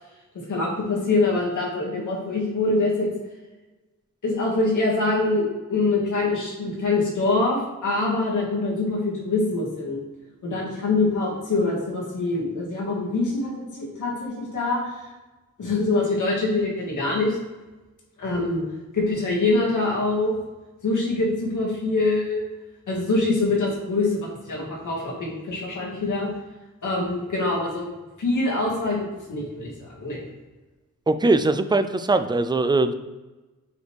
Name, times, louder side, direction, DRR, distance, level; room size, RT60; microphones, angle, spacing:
voice 1, 0.5-3.1 4.2-10.0 10.4-15.1 15.6-17.4 18.2-18.6 18.9-20.3 20.8-22.4 22.9-26.3 26.8-27.9 28.2-30.2, left 2 dB, 75° left, -3 dB, 2.1 m, -24 dB
voice 2, 31.1-32.9, right 2 dB, 15° right, 9 dB, 0.4 m, -21 dB
6.3 x 4.8 x 3.5 m, 1.2 s
wide cardioid pair, 120°, 31 cm